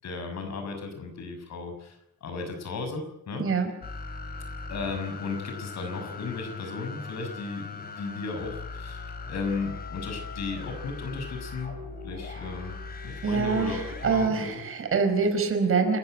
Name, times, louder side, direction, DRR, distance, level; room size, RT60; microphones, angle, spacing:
voice 1, 0.0-3.4 4.7-11.7 12.0-12.8 13.0-13.8 14.1-14.6, left 4 dB, 65° left, 6 dB, 6.5 m, -35 dB
voice 2, 3.4-3.7 13.2-16.0, right 5 dB, 50° right, 6 dB, 4.9 m, -25 dB
sound 1, 3.8-14.3, left 4 dB, 30° left, 3.5 m, -39 dB
28.5 x 15.5 x 9.2 m, 0.79 s
wide cardioid pair, 175°, 29 cm